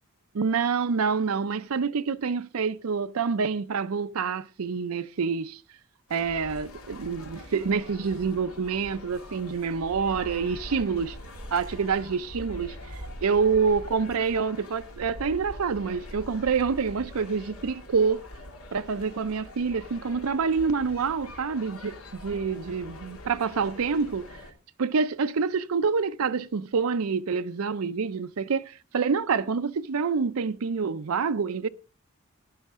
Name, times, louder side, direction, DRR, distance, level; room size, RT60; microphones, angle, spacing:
voice 1, 0.3-5.6 6.1-11.2 11.5-18.2 18.7-24.3 24.8-31.7, right 5 dB, 80° right, 0.5 m, -27 dB
sound 1, 6.1-24.5, left 1 dB, 90° left, 2.6 m, -43 dB
15.5 x 10.5 x 3.6 m
head